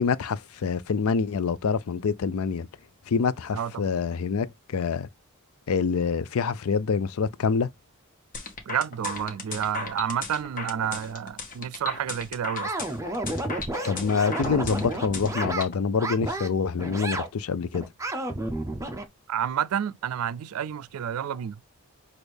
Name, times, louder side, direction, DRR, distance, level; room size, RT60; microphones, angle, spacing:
voice 1, 0.0-2.7 3.1-5.1 5.7-7.7 13.9-17.9, left 5 dB, 75° left, 0.4 m, -26 dB
voice 2, 3.5-3.9 8.7-12.7 19.3-21.6, right 9 dB, 80° right, 0.3 m, -30 dB
sound 1, 8.3-15.7, left 3 dB, 35° left, 1.0 m, -35 dB
sound 2, 12.6-15.6 16.0-16.5 16.8-17.3 17.7-19.0, right 2 dB, 15° right, 0.5 m, -31 dB
6.2 x 2.5 x 3.3 m
head